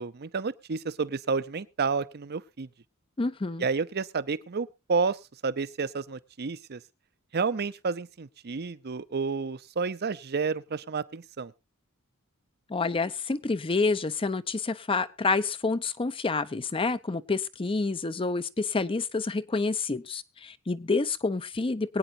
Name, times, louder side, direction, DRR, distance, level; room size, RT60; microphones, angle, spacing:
voice 1, 0.0-2.7 3.6-5.2 5.4-6.8 7.3-11.5, right 4 dB, 50° right, 0.7 m, -30 dB
voice 2, 3.2-3.7 12.7-22.0, left 3 dB, 25° left, 0.6 m, -28 dB
23.0 x 9.0 x 2.7 m
head